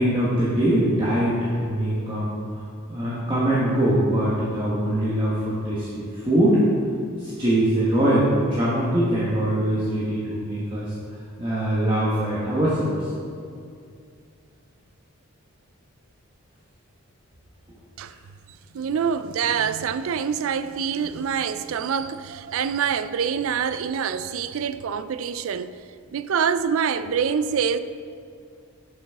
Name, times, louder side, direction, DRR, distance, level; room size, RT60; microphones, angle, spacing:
voice 1, 0.0-2.4 2.9-6.6 7.1-10.9 11.4-13.1, right 1 dB, 20° right, 1.3 m, -22 dB
voice 2, 18.7-25.7 26.1-27.8, right 7 dB, 65° right, 0.4 m, -25 dB
11.5 x 6.1 x 3.6 m
head